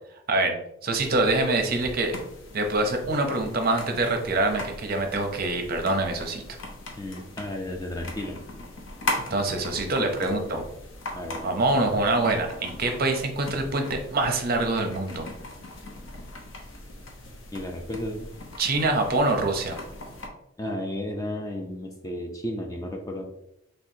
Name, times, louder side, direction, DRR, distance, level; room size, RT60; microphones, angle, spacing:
voice 1, 0.8-2.2 2.5-6.4 9.3-10.6 11.4-15.3 18.6-19.8, right 2 dB, 45° right, 5 dB, 0.6 m, -25 dB
sound 1, 0.9-20.3, left 2 dB, 65° left, 0.7 m, -39 dB
voice 2, 7.0-8.4 10.0-10.6 11.1-11.6 17.5-18.3 20.6-23.2, left 1 dB, 15° left, 2 dB, 0.4 m, -33 dB
4.5 x 3.3 x 2.6 m, 0.80 s
head